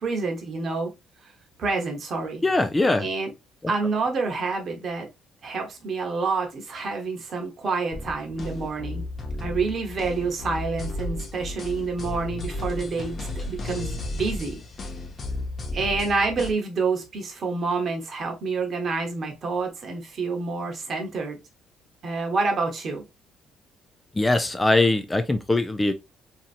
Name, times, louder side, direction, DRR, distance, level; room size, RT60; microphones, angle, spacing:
voice 1, 0.0-0.9 1.6-2.4 3.0-3.3 3.7-5.1 5.4-9.0 9.4-14.6 15.7-21.4 22.0-23.1, right 4 dB, 50° right, 0.9 m, -28 dB
voice 2, 2.4-3.1 24.2-25.9, left 2 dB, 15° left, 0.3 m, -21 dB
sound 1, 7.9-16.5, left 2 dB, 40° left, 0.8 m, -33 dB
2.8 x 2.6 x 2.4 m
cardioid pair, 95°, 0 cm